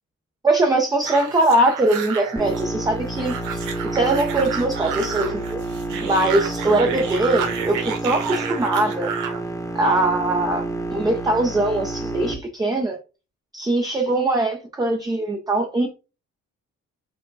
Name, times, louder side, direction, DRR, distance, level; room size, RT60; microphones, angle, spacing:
voice 1, 0.4-3.6 3.9-5.6 6.0-9.1 9.7-10.6 10.9-13.0 13.5-15.9, right 2 dB, 15° right, 2 dB, 0.6 m, -21 dB
sound 1, 1.0-9.4, right 7 dB, 90° right, 0.9 m, -31 dB
sound 2, 2.4-12.3, right 2 dB, 10° left, 1.0 m, -29 dB
4.6 x 2.1 x 3.9 m, 0.31 s
cardioid pair, 90°, 30 cm